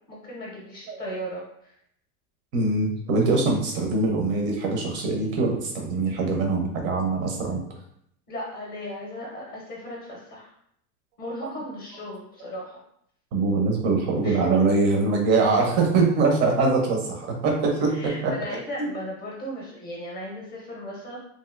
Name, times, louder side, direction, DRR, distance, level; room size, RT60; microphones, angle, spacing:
voice 1, 0.1-1.7 8.3-10.5 11.2-12.8 14.2-14.5 17.9-21.2, equal, 25° left, -4 dB, 0.7 m, -36 dB
voice 2, 2.5-7.6 13.3-17.9 18.2-18.3, right 3 dB, 25° right, 1 dB, 0.5 m, -23 dB
3.0 x 2.5 x 2.4 m, 0.71 s
supercardioid pair, 140°, 46 cm